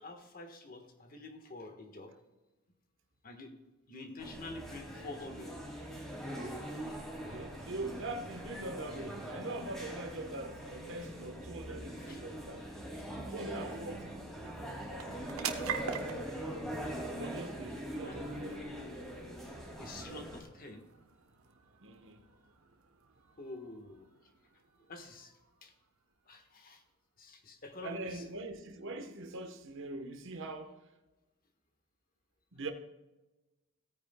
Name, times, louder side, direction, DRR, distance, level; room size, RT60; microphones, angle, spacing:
voice 1, 0.0-2.1 3.2-3.5 3.9-5.6 12.0-12.2 13.0-13.1 18.0-18.2 19.8-20.9 23.4-24.1 24.9-25.3 25.6-25.7 26.3-26.8 27.2-28.2, left 2 dB, 45° left, 1.4 m, -47 dB
sound 1, 4.2-20.4, equal, ahead, 2.6 m, -42 dB
voice 2, 7.3-12.9 13.3-15.4 17.2-18.7 21.8-22.2 27.8-30.9 32.5-32.7, right 2 dB, 65° right, 1.2 m, -43 dB
sound 2, 12.3-26.8, right 7 dB, 90° right, 1.0 m, -47 dB
17.0 x 9.6 x 2.3 m
head